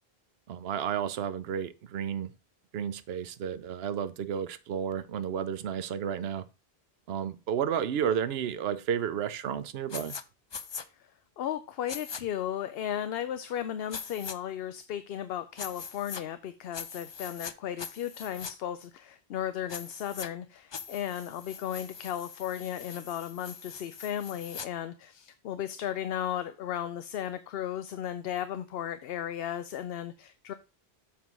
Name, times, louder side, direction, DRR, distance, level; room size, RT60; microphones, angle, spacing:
voice 1, 0.5-2.3 2.7-6.5 7.1-10.1, right 8 dB, 70° right, 0.9 m, -32 dB
sound 1, 9.9-10.2 10.5-10.9 11.9-12.2 13.9-14.4 15.6-16.2 16.7-17.5 17.8-18.5 19.7-20.3 20.7-24.7, left 6 dB, 50° left, 0.3 m, -42 dB
voice 2, 11.4-30.5, left 10 dB, 70° left, 0.8 m, -35 dB
7.4 x 3.5 x 6.1 m
omnidirectional pair, 1.1 m